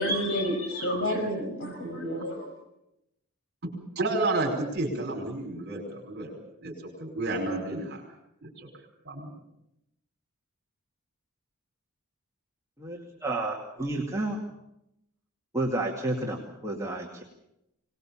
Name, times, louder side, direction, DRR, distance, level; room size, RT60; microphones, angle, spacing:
voice 1, 0.0-2.5, equal, 60° left, 3 dB, 5.8 m, -29 dB
voice 2, 3.6-6.3 6.6-6.7 7.0-8.0 8.4-8.7 9.0-9.3, right 2 dB, 45° right, 1 dB, 5.1 m, -31 dB
voice 3, 12.8-14.4 15.5-17.2, right 2 dB, 15° right, -2 dB, 2.3 m, -31 dB
24.0 x 20.0 x 7.3 m, 0.83 s
head